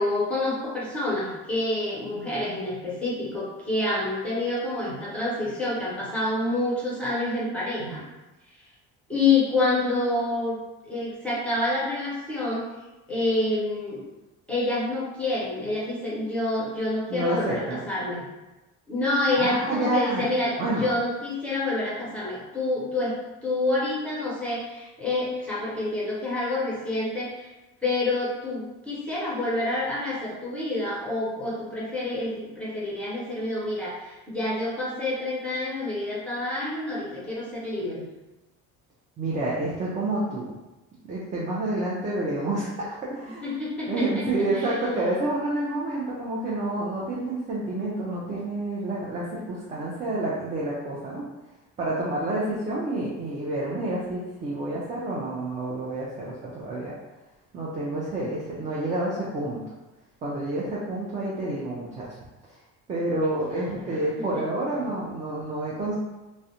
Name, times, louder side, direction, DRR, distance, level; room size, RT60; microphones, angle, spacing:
voice 1, 0.0-8.0 9.1-10.6 10.8-12.7 13.1-14.0 14.5-18.2 18.9-27.5 27.8-38.0 43.4-44.2 44.6-44.7 63.5-63.7 64.2-64.4, left 2 dB, 5° left, -7 dB, 0.8 m, -28 dB
voice 2, 17.1-17.8 19.4-20.2 20.6-20.9 39.2-40.5 41.0-43.6 43.9-51.3 51.8-56.9 57.5-59.6 60.2-62.1 62.9-65.9, right 2 dB, 20° right, -6 dB, 0.3 m, -29 dB
2.4 x 2.0 x 2.8 m, 1.0 s
cardioid pair, 130°, 37 cm